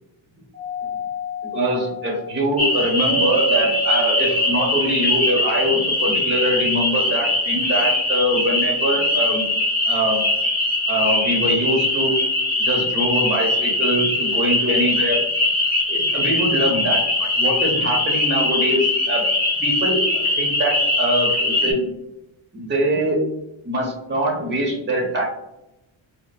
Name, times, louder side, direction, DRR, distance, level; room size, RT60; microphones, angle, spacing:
Doorbell, 0.5-5.4, right 2 dB, 50° right, 0.6 m, -29 dB
voice 1, 1.5-9.4 9.8-10.2 10.9-12.1 12.6-15.2 15.9-19.2 19.6-21.9 22.5-23.2 23.6-25.2, right 1 dB, 20° right, -2 dB, 0.9 m, -23 dB
sound 1, 2.6-21.7, left 2 dB, 20° left, 1.0 m, -21 dB
4.9 x 2.1 x 2.2 m, 0.90 s
wide cardioid pair, 120°, 49 cm